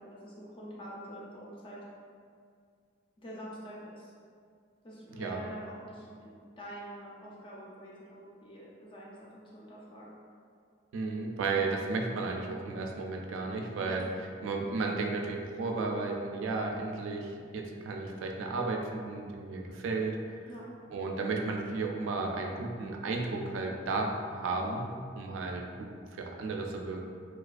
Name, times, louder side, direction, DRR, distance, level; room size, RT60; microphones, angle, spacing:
voice 1, 0.0-1.8 3.2-4.1 4.8-10.2 13.9-14.0 20.5-20.7, right 1 dB, 25° left, -5 dB, 0.4 m, -46 dB
voice 2, 10.9-14.1 14.4-20.2 20.9-27.1, right 3 dB, 80° right, 2 dB, 0.3 m, -33 dB
2.3 x 2.3 x 2.4 m, 2.2 s
head